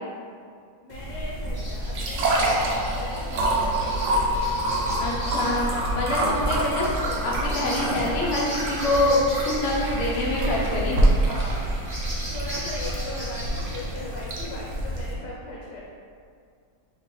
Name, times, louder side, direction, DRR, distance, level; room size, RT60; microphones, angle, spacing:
voice 1, 0.8-2.7 2.9-3.8 5.3-5.9 11.2-11.8 12.3-15.8, left 2 dB, 75° left, -4 dB, 1.2 m, -39 dB
sound 1, 0.9-15.1, right 1 dB, 80° right, 0.6 m, -27 dB
sound 2, 1.5-14.2, equal, 25° right, 1.3 m, -34 dB
voice 2, 5.0-11.0, left 1 dB, 55° left, -4 dB, 0.8 m, -25 dB
4.7 x 3.1 x 3.0 m, 2.3 s
omnidirectional pair, 2.0 m